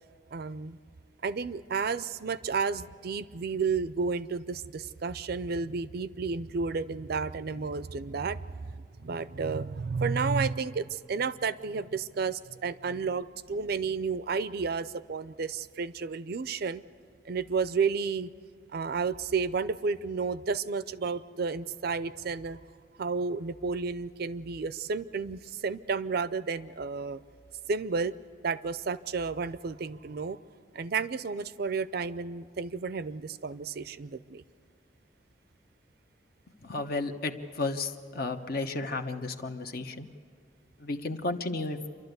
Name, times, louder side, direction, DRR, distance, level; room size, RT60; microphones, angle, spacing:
voice 1, 0.3-0.8 1.2-8.7 9.0-16.8 17.2-18.3 18.7-22.6 23.0-27.2 27.7-28.1 28.4-30.4 30.7-34.4, right 5 dB, 55° right, 15 dB, 0.5 m, -31 dB
voice 2, 36.6-40.1 40.8-41.8, left 3 dB, 55° left, 6 dB, 1.0 m, -33 dB
28.5 x 12.0 x 8.1 m, 2.2 s
head